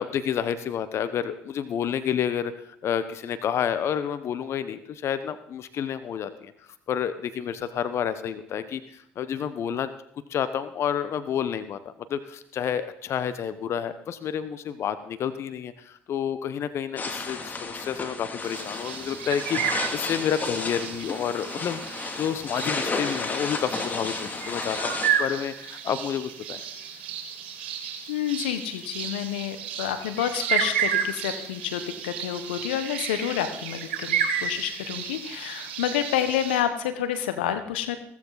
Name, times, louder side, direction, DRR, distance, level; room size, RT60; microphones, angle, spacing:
voice 1, 0.0-6.5 6.9-9.9 10.3-26.6, left 8 dB, 55° left, 12 dB, 1.1 m, -30 dB
sound 1, 17.0-25.1, left 3 dB, 30° left, 2.8 m, -32 dB
sound 2, 18.4-36.6, right 8 dB, 85° right, 2.2 m, -32 dB
voice 2, 28.1-38.0, left 10 dB, 85° left, 9 dB, 1.3 m, -29 dB
16.0 x 15.0 x 4.1 m, 0.67 s
hypercardioid pair, 60°, 6 cm